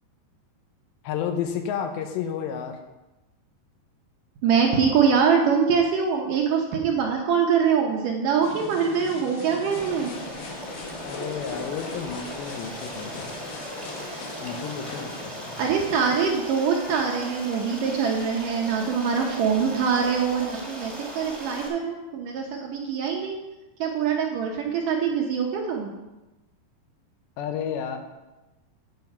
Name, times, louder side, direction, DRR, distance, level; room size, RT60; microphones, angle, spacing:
voice 1, 1.0-2.8 11.0-13.3 14.4-15.6 27.4-28.0, left 8 dB, 80° left, 5 dB, 3.1 m, -31 dB
voice 2, 4.4-10.1 15.6-23.4 23.8-25.9, right 6 dB, 80° right, 0 dB, 1.9 m, -24 dB
sound 1, 8.4-16.4, left 3 dB, 65° left, 3.1 m, -39 dB
Stream, 9.7-21.7, equal, ahead, 1.3 m, -38 dB
8.7 x 8.2 x 5.3 m, 1.0 s
omnidirectional pair, 5.1 m